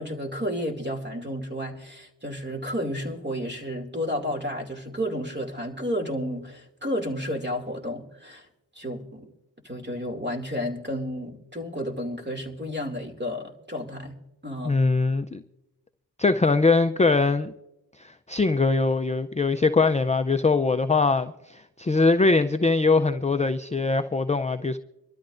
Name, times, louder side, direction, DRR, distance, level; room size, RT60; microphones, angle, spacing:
voice 1, 0.0-8.5 8.7-9.3 9.6-14.2 14.4-14.8, equal, 25° right, 2.5 m, -31 dB
voice 2, 14.6-15.4 16.2-17.5 18.0-24.8, left 3 dB, 15° left, 0.5 m, -22 dB
24.5 x 13.0 x 2.6 m
cardioid pair, 55°, 42 cm